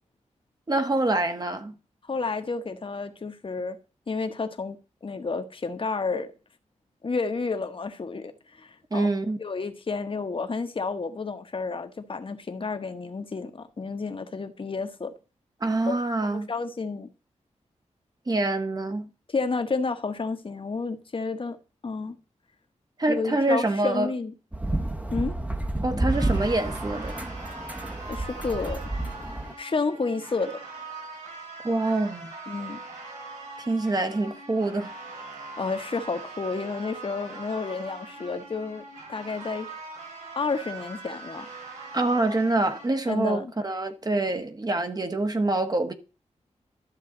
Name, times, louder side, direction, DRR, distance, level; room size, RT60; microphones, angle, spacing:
voice 1, 0.7-1.8 8.9-9.4 15.6-16.5 18.3-19.1 23.0-24.1 25.8-27.3 31.6-32.3 33.7-34.9 41.9-45.9, right 2 dB, 30° right, 1.4 m, -26 dB
voice 2, 2.1-3.8 4.1-6.3 7.0-9.1 9.4-15.1 15.9-16.0 16.2-17.1 19.3-21.6 21.8-22.2 23.1-24.3 25.1-25.4 28.1-28.8 29.6-30.6 32.5-32.8 35.4-38.8 39.1-39.8 40.3-41.5 43.1-43.5, left 4 dB, 45° left, 1.3 m, -31 dB
sound 1, 24.5-29.5, right 1 dB, 10° right, 1.1 m, -30 dB
sound 2, 26.1-42.9, right 3 dB, 85° right, 4.8 m, -42 dB
12.5 x 7.3 x 4.0 m
wide cardioid pair, 90°, 12 cm